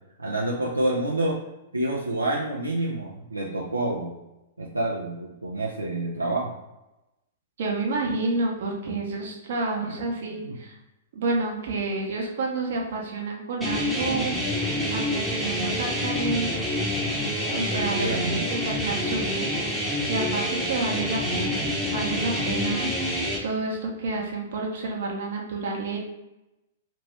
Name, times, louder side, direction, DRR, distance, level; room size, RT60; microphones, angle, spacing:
voice 1, 0.2-1.4 1.7-4.1 4.6-6.5 9.8-10.0 10.4-10.6 17.7-18.4, right 1 dB, 90° right, -3 dB, 0.4 m, -28 dB
voice 2, 7.6-10.8 11.1-14.3 14.9-16.7 17.5-21.6 21.9-22.9 23.4-26.0, right 3 dB, 60° right, 0 dB, 0.8 m, -29 dB
sound 1, 13.6-23.4, left 1 dB, ahead, 0.7 m, -27 dB
2.9 x 2.6 x 3.2 m, 0.95 s
figure-of-eight pair, 105°, 0 cm